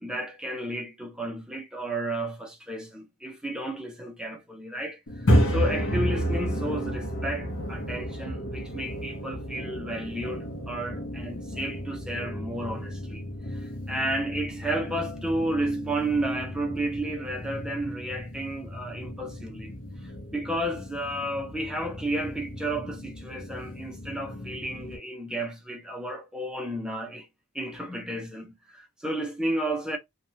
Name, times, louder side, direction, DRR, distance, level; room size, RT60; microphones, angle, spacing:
voice 1, 0.0-19.7 20.3-27.3 27.5-30.0, right 1 dB, 5° right, 0.6 m, -32 dB
sound 1, 5.1-25.0, equal, 60° left, 0.9 m, -32 dB
2.9 x 2.3 x 2.7 m
head